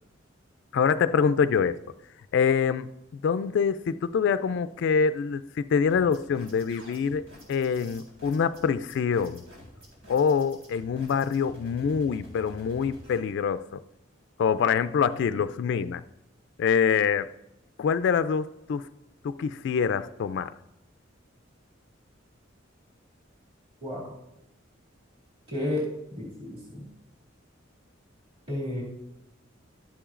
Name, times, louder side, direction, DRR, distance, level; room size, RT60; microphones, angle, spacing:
voice 1, 0.7-1.8 2.3-2.9 3.2-9.4 10.1-13.7 14.4-16.0 16.6-17.3 17.8-18.9 19.2-20.5, left 6 dB, 65° left, 0.3 m, -25 dB
sound 1, 5.9-13.2, equal, 85° right, 3.8 m, -49 dB
voice 2, 23.8-24.1 25.5-26.9 28.5-28.8, left 1 dB, 30° right, 2.3 m, -32 dB
12.0 x 9.9 x 2.5 m
head